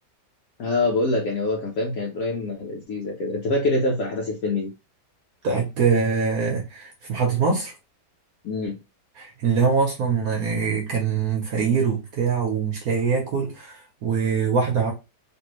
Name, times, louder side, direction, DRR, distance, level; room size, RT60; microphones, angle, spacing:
voice 1, 0.6-4.7 8.4-8.8, left 2 dB, 65° left, 1.0 m, -25 dB
voice 2, 5.4-7.7 9.2-14.9, right 5 dB, 65° right, 1.2 m, -23 dB
3.2 x 2.6 x 3.0 m
omnidirectional pair, 1.8 m